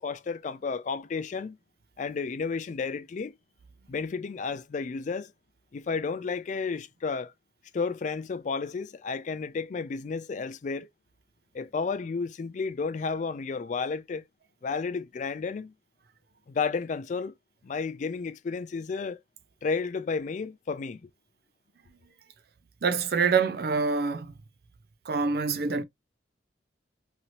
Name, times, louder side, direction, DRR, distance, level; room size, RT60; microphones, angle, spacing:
voice 1, 0.0-1.6 2.0-3.3 3.9-5.3 5.7-7.3 7.7-10.9 11.5-14.2 14.6-15.7 16.5-17.3 17.6-19.2 19.6-21.0, left 4 dB, 40° left, 0.3 m, -32 dB
voice 2, 22.8-24.3 25.1-25.8, right 5 dB, 55° right, 0.4 m, -26 dB
3.0 x 2.8 x 2.5 m
head